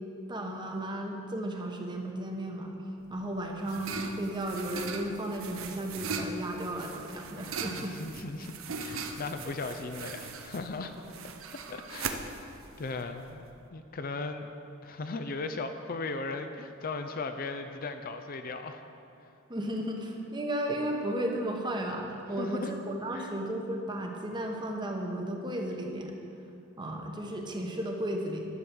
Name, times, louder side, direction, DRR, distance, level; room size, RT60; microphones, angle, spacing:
voice 1, 0.3-2.7 3.1-8.0 19.5-26.1 26.8-28.5, right 1 dB, 20° right, 1 dB, 1.1 m, -34 dB
sound 1, 3.0-13.6, right 4 dB, 85° right, 0.7 m, -40 dB
voice 2, 7.8-10.9 11.7-12.3 12.8-13.4 13.7-14.5 14.8-18.8 22.4-22.7 23.1-23.3, left 3 dB, 45° left, 7 dB, 0.5 m, -37 dB
11.0 x 7.1 x 6.2 m, 2.6 s
head